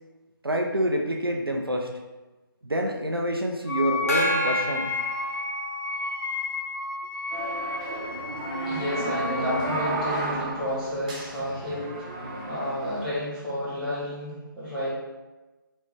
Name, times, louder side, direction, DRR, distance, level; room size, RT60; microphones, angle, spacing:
voice 1, 0.4-1.9 2.6-4.9 6.1-6.2, right 1 dB, 85° right, 2 dB, 0.6 m, -27 dB
Wind instrument woodwind instrument, 3.7-10.0, left 3 dB, 70° left, 0.6 m, -32 dB
Gong, 4.1-6.1, left 1 dB, 40° left, 0.8 m, -29 dB
sound 1, 7.3-13.1, right 1 dB, 20° right, 0.7 m, -32 dB
voice 2, 8.6-12.1 12.5-14.9, equal, 5° right, -14 dB, 1.4 m, -31 dB
4.1 x 3.2 x 3.5 m, 1.1 s
figure-of-eight pair, 150°, 12 cm